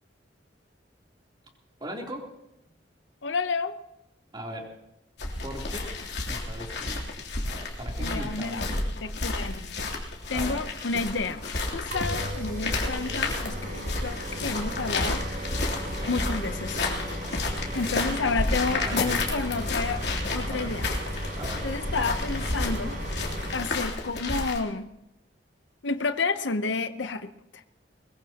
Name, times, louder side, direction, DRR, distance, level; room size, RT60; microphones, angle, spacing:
voice 1, 1.8-2.3 4.3-4.7 5.4-5.9 6.3-7.0 7.5-8.8 10.3-10.6 15.9-16.4 17.7-19.4 20.5-20.7 21.3-21.7, equal, 25° right, -1 dB, 3.3 m, -39 dB
voice 2, 3.2-3.7 8.0-8.7 9.0-9.9 10.3-11.4 11.7-15.2 16.1-16.8 17.7-20.0 20.3-20.9 21.6-22.9 23.5-24.9 25.8-27.3 27.5-27.6, left 4 dB, 80° left, 10 dB, 0.8 m, -30 dB
sound 1, 5.2-24.6, left 2 dB, 65° left, 3.2 m, -31 dB
sound 2, 11.9-23.6, equal, 50° right, 7.6 m, -35 dB
22.5 x 21.5 x 2.9 m, 0.85 s
head